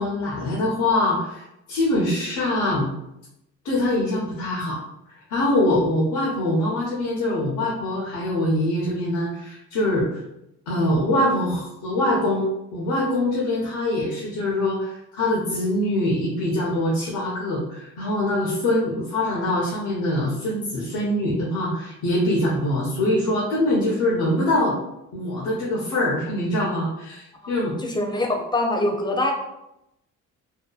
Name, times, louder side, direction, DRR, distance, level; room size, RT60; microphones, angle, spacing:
voice 1, 0.0-1.4 1.7-2.9 3.6-4.8 5.3-10.2 10.7-24.8 25.1-27.8, left 1 dB, 90° left, -4 dB, 0.6 m, -23 dB
voice 2, 27.4-29.3, left 1 dB, 15° left, 1 dB, 0.4 m, -24 dB
2.7 x 2.2 x 2.3 m, 0.86 s
cardioid pair, 90°, 30 cm